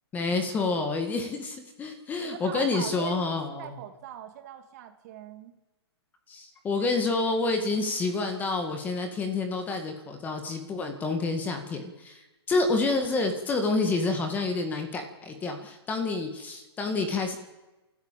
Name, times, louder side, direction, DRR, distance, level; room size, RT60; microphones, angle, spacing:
voice 1, 0.1-3.7 6.3-17.4, left 3 dB, 10° left, 5 dB, 1.9 m, -28 dB
voice 2, 2.2-5.5, right 10 dB, 35° right, 6 dB, 2.5 m, -42 dB
29.5 x 14.0 x 8.6 m, 1.1 s
hypercardioid pair, 160°, 14 cm